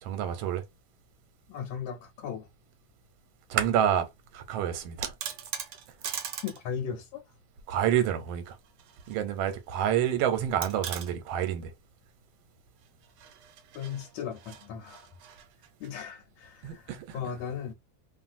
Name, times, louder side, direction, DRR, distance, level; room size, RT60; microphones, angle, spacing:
voice 1, 0.0-0.6 3.5-5.1 6.0-6.2 7.7-8.6 9.1-11.7 16.6-17.2, right 10 dB, 85° right, 1.4 m, -28 dB
voice 2, 1.5-2.5 6.0-6.1 6.4-7.2 13.7-15.1 15.8-17.7, left 7 dB, 85° left, 1.4 m, -37 dB
sound 1, 4.8-6.6 6.9-7.0 8.5-9.2 9.5-9.6 10.6-11.1 13.0-15.9, right 8 dB, 70° right, 1.1 m, -40 dB
3.0 x 2.5 x 2.4 m
omnidirectional pair, 2.2 m